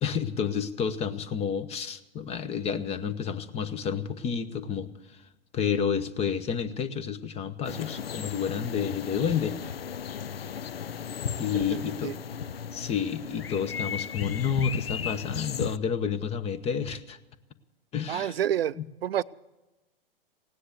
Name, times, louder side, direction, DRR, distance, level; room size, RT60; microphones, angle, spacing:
voice 1, 0.0-4.9 5.5-9.6 11.4-12.1 12.7-17.2 17.9-18.3, left 7 dB, 20° left, 14 dB, 0.9 m, -30 dB
sound 1, 7.6-15.8, left 7 dB, 85° left, 0.5 m, -35 dB
voice 2, 11.7-12.1 18.1-18.8 19.0-19.2, right 10 dB, 80° right, 17 dB, 0.5 m, -28 dB
17.0 x 9.9 x 8.2 m, 1.1 s
figure-of-eight pair, 110°, 29 cm